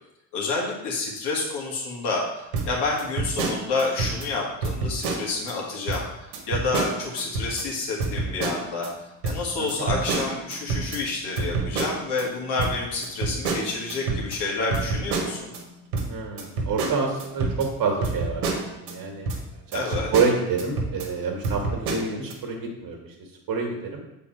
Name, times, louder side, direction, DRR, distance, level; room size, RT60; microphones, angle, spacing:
voice 1, 0.3-6.0 6.5-8.9 9.2-15.5 19.7-20.1, left 3 dB, 55° left, -2 dB, 2.2 m, -29 dB
sound 1, 2.5-4.3 4.6-5.5 5.9-6.0 6.3-7.6 8.0-8.9 9.2-12.2 12.6-15.6 15.9-18.9 19.3-19.4 19.7-21.1 21.4-22.3, right 3 dB, 75° right, 1.3 m, -28 dB
voice 2, 9.6-9.9 16.1-19.3 19.7-23.0 23.5-24.0, right 4 dB, 45° right, 2 dB, 1.9 m, -27 dB
7.2 x 4.2 x 4.5 m, 0.91 s
figure-of-eight pair, 55°, 48 cm